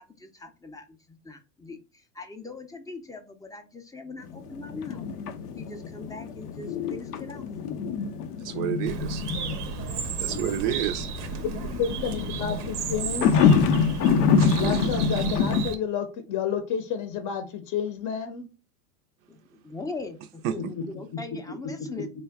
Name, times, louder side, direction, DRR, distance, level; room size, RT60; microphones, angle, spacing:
voice 1, 0.0-5.1 5.6-7.5 19.3-19.4 19.6-22.1, left 3 dB, 10° left, 0.5 m, -41 dB
sound 1, 4.2-15.7, left 5 dB, 90° left, 0.6 m, -26 dB
voice 2, 8.4-9.2 10.2-11.1 14.4-14.8 20.4-20.5, right 11 dB, 50° right, 0.4 m, -29 dB
Bird, 8.9-15.8, right 6 dB, 90° right, 0.7 m, -34 dB
voice 3, 11.4-13.4 14.6-18.5, left 7 dB, 45° left, 0.7 m, -30 dB
3.7 x 2.2 x 3.4 m
hypercardioid pair, 95°, 45 cm